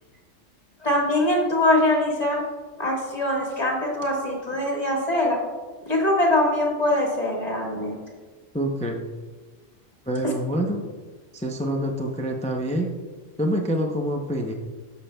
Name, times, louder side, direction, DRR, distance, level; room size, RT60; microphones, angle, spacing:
voice 1, 0.8-2.4 2.8-5.4 5.8-8.0 10.2-10.3, left 1 dB, 30° left, -2 dB, 1.7 m, -23 dB
voice 2, 8.5-9.0 10.1-10.8 11.3-12.9 13.4-14.5, equal, 10° left, 2 dB, 0.3 m, -26 dB
11.5 x 6.9 x 2.3 m, 1.4 s
omnidirectional pair, 1.3 m